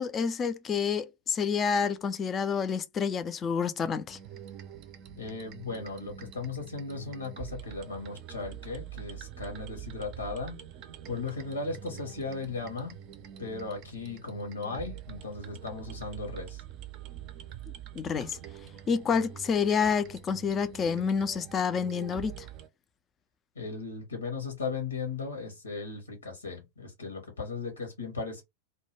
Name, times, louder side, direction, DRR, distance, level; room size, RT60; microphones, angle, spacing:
voice 1, 0.0-4.2 18.0-18.4 18.9-22.5, left 6 dB, 25° left, 0.3 m, -28 dB
sound 1, 4.1-22.7, right 11 dB, 40° right, 0.4 m, -45 dB
voice 2, 5.2-10.6 11.1-13.0 13.4-16.6 23.5-28.4, left 4 dB, 75° left, 0.9 m, -37 dB
2.2 x 2.1 x 3.1 m
figure-of-eight pair, 90°, 0 cm